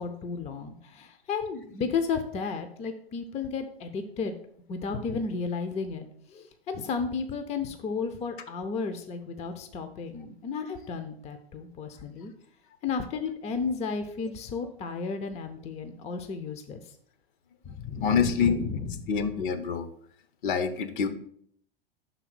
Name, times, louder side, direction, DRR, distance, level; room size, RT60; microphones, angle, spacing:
voice 1, 0.0-4.3 4.7-12.3 12.8-16.8 17.6-19.1, left 5 dB, 20° left, 8 dB, 0.6 m, -33 dB
voice 2, 18.0-18.6 19.1-19.9 20.4-21.1, left 6 dB, 55° left, 10 dB, 0.8 m, -26 dB
5.7 x 4.0 x 6.0 m, 0.63 s
figure-of-eight pair, 95°, 30 cm